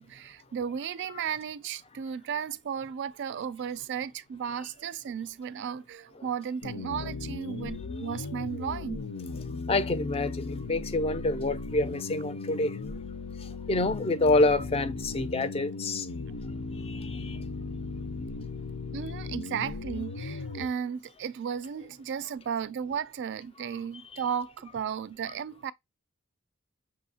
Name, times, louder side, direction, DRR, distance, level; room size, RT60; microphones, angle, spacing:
voice 1, 0.0-9.0 18.9-25.7, right 7 dB, 55° right, 0.3 m, -34 dB
sound 1, 6.6-20.7, left 3 dB, 90° left, 0.6 m, -37 dB
voice 2, 9.7-12.7 13.7-16.1 16.9-17.4 24.1-24.2, left 2 dB, 25° left, 0.4 m, -27 dB
5.9 x 2.8 x 2.8 m
head